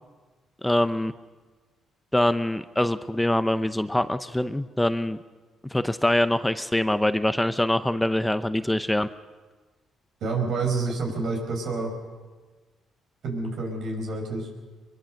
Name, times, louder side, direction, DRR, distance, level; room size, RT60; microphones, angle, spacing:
voice 1, 0.6-1.1 2.1-5.2 5.7-9.1, left 1 dB, 5° left, 11 dB, 0.7 m, -24 dB
voice 2, 10.2-11.9 13.2-14.5, right 3 dB, 70° right, 2 dB, 5.6 m, -28 dB
23.0 x 22.5 x 6.5 m, 1.3 s
cardioid pair, 90°, 0 cm